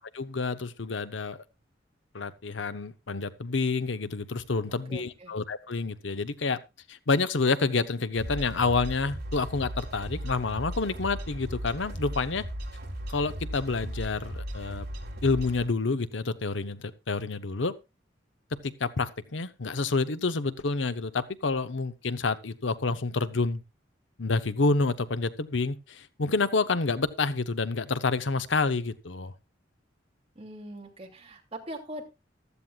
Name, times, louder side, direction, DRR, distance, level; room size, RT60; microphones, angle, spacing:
voice 1, 0.1-1.4 2.1-6.6 6.9-12.4 13.1-14.9 15.2-17.7 18.6-23.6 24.2-29.3, left 3 dB, 75° left, 0.9 m, -28 dB
voice 2, 4.9-5.3 30.3-32.0, right 1 dB, 30° right, 2.9 m, -41 dB
sound 1, 8.1-15.6, equal, 60° right, 3.6 m, -37 dB
15.0 x 12.5 x 2.4 m
head